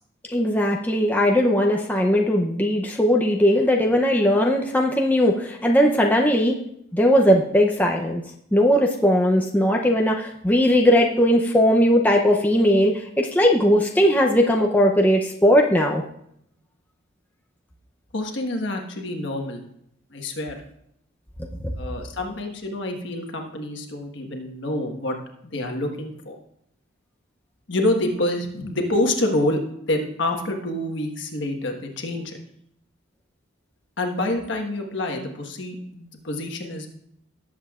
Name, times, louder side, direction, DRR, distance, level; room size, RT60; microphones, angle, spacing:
voice 1, 0.3-6.6 6.9-8.2 8.5-16.0, equal, 10° left, 0 dB, 0.6 m, -19 dB
voice 2, 18.1-19.7 20.1-20.6 21.8-25.2 25.4-26.4 27.7-29.6 29.9-32.4 34.0-36.9, left 1 dB, 60° left, 2 dB, 1.4 m, -27 dB
18.0 x 7.6 x 2.4 m, 0.73 s
head